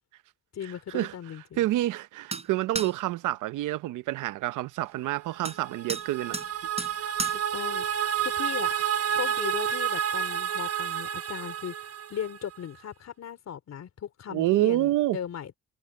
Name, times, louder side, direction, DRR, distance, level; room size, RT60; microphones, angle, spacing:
voice 1, 0.5-1.7 7.3-8.7 9.1-11.7 12.1-15.6, left 9 dB, 60° left, 3.6 m, -37 dB
voice 2, 1.6-6.4 14.3-15.2, right 15 dB, 90° right, 0.9 m, -27 dB
sound 1, 2.3-2.5 2.7-2.9 5.4-5.6 5.9-6.1 6.3-6.5 6.8-6.9 7.2-7.4, right 3 dB, 20° right, 4.0 m, -32 dB
sound 2, 5.4-12.5, right 9 dB, 50° right, 1.3 m, -30 dB
cardioid pair, 90°, 30 cm